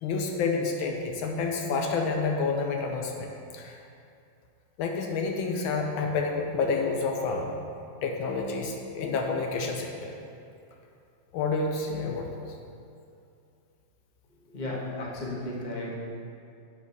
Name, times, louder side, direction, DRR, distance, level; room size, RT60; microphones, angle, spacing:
voice 1, 0.0-3.8 4.8-7.6 8.0-10.1 11.3-12.3 14.9-15.0, left 4 dB, 80° left, 2 dB, 1.5 m, -29 dB
voice 2, 14.4-15.9, left 1 dB, 25° left, -5 dB, 1.3 m, -34 dB
8.1 x 5.1 x 5.4 m, 2.5 s
omnidirectional pair, 2.2 m